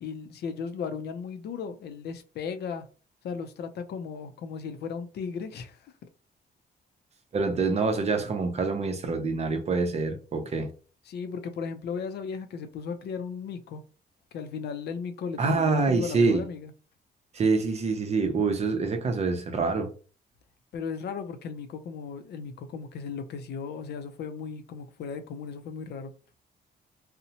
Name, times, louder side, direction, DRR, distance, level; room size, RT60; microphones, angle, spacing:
voice 1, 0.0-2.9 3.2-5.9 11.1-13.8 14.3-16.7 20.7-26.1, left 6 dB, 70° left, 0.4 m, -36 dB
voice 2, 7.3-10.7 15.4-16.4 17.3-19.9, right 4 dB, 40° right, 0.5 m, -26 dB
2.7 x 2.1 x 2.7 m
cardioid pair, 125°, 18 cm